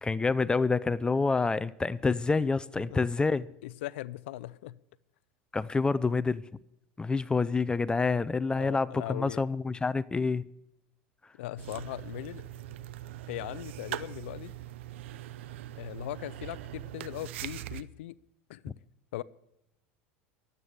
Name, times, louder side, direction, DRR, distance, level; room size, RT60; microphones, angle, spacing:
voice 1, 0.0-3.5 5.5-6.5 7.0-10.4, left 4 dB, 15° left, 0.5 m, -27 dB
voice 2, 3.6-4.8 8.6-9.4 11.4-12.4 13.3-14.5 15.8-18.2 18.5-18.7 19.1-19.2, left 16 dB, 80° left, 0.5 m, -39 dB
sound 1, 11.6-17.8, right 13 dB, 80° right, 0.6 m, -41 dB
13.0 x 8.2 x 7.9 m
supercardioid pair, 100°, 6 cm